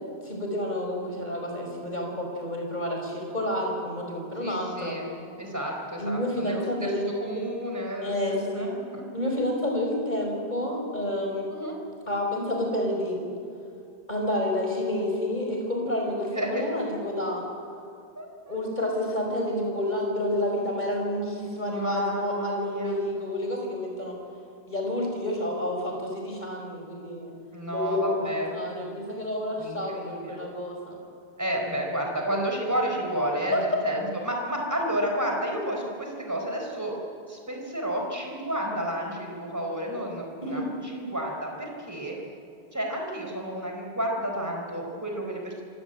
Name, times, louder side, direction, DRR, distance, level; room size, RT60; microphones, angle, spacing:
voice 1, 0.2-5.0 6.0-7.1 8.0-8.7 9.1-11.5 12.1-13.2 14.1-17.4 18.5-24.2 24.7-27.3 27.7-31.0 33.5-33.6 40.4-40.7, left 1 dB, 45° left, 0 dB, 5.5 m, -29 dB
voice 2, 4.4-5.1 5.4-6.9 7.2-9.0 11.5-11.8 16.3-16.6 18.1-18.5 21.7-23.0 27.5-28.5 29.6-30.4 31.4-37.0 37.3-42.2 42.7-45.6, right 1 dB, 15° right, 1 dB, 4.4 m, -31 dB
26.0 x 16.5 x 9.1 m, 2.5 s
omnidirectional pair, 1.1 m